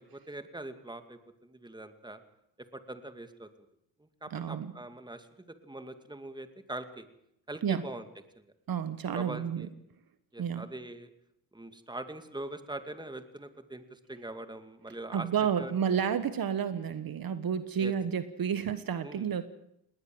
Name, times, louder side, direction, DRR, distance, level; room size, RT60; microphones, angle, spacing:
voice 1, 0.0-2.2 2.7-3.5 4.0-7.1 7.5-8.1 8.4-8.5 9.1-9.7 10.3-11.1 11.5-15.3 15.6-15.7 17.8-17.9 19.0-19.3, right 2 dB, 10° right, 9 dB, 2.3 m, -42 dB
voice 2, 4.3-4.7 7.6-7.8 8.7-9.7 10.4-10.7 15.1-19.4, right 8 dB, 60° right, 12 dB, 1.3 m, -31 dB
19.5 x 19.0 x 7.8 m, 0.77 s
cardioid pair, 75°, 40 cm